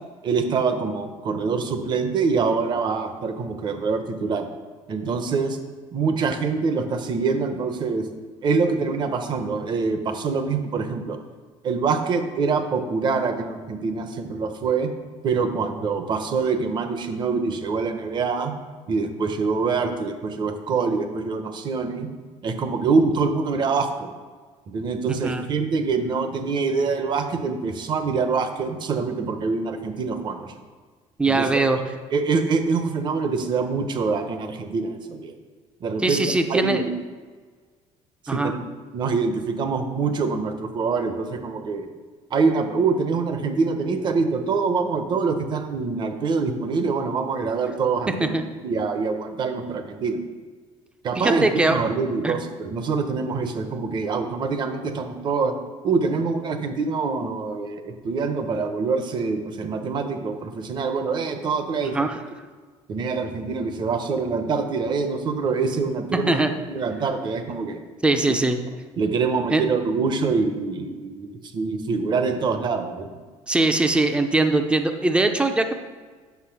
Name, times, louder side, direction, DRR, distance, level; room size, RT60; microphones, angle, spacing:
voice 1, 0.2-4.5 4.9-5.6 5.9-8.0 8.4-11.2 11.6-14.9 15.2-18.5 18.9-22.1 22.4-24.1 24.7-30.5 31.3-31.8 32.1-35.4 35.8-36.2 36.5-36.9 38.2-38.6 38.9-41.9 42.3-48.3 48.6-50.2 51.0-55.5 55.8-62.0 62.9-66.4 66.7-67.8 68.2-68.4 69.0-73.2, right 4 dB, 35° right, 7 dB, 0.9 m, -25 dB
voice 2, 25.1-25.4 31.2-31.8 36.0-36.8 38.3-38.5 48.2-48.4 51.2-51.8 52.2-52.3 61.8-62.1 66.3-66.5 68.0-68.6 69.5-69.6 73.5-75.7, right 2 dB, 10° right, 6 dB, 0.6 m, -21 dB
8.2 x 6.0 x 5.9 m, 1.5 s
cardioid pair, 150°, 13 cm